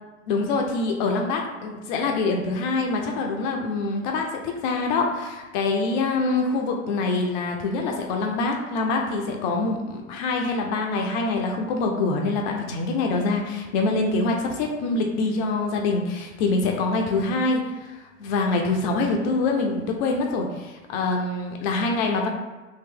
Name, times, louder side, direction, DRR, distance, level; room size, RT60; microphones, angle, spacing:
voice 1, 0.3-22.3, left 3 dB, 40° left, 2 dB, 0.5 m, -25 dB
3.0 x 2.8 x 3.5 m, 1.2 s
figure-of-eight pair, 90°, 38 cm